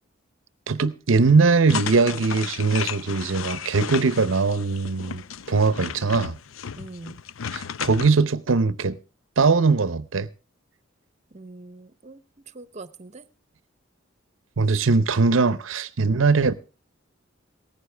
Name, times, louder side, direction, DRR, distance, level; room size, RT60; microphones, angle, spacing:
voice 1, 0.7-5.2 5.5-6.4 7.5-9.0 9.4-10.3 14.6-16.5, right 4 dB, 80° right, 0.7 m, -21 dB
sound 1, 1.7-8.1, left 7 dB, 90° left, 0.6 m, -34 dB
voice 2, 6.8-7.2 11.3-13.3, right 3 dB, 35° right, 0.8 m, -43 dB
17.5 x 14.5 x 3.3 m
head